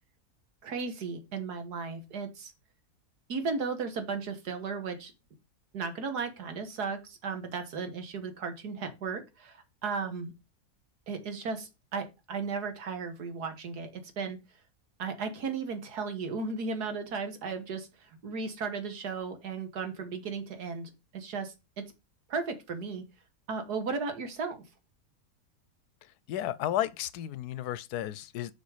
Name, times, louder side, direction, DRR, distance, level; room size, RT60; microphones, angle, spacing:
voice 1, 0.6-2.5 3.3-5.1 5.7-10.3 11.1-14.4 15.0-21.9 22.3-23.0 23.5-24.6, right 5 dB, 85° right, 2.0 m, -35 dB
voice 2, 26.3-28.5, left 12 dB, 90° left, 1.1 m, -33 dB
6.7 x 5.4 x 4.8 m
omnidirectional pair, 1.6 m